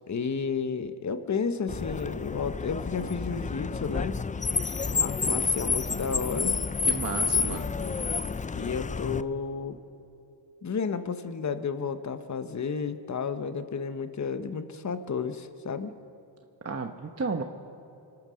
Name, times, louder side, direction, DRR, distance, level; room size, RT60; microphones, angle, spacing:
voice 1, 0.1-4.2 4.9-6.6 7.3-8.1 8.6-9.8 10.6-15.9, left 5 dB, 35° left, 10 dB, 1.1 m, -32 dB
Car, 1.7-9.2, left 5 dB, 15° left, 0.4 m, -29 dB
voice 2, 6.8-7.8 16.6-17.4, right 4 dB, 30° right, 5 dB, 1.0 m, -33 dB
25.0 x 9.1 x 6.4 m, 2.8 s
supercardioid pair, 50°, 48 cm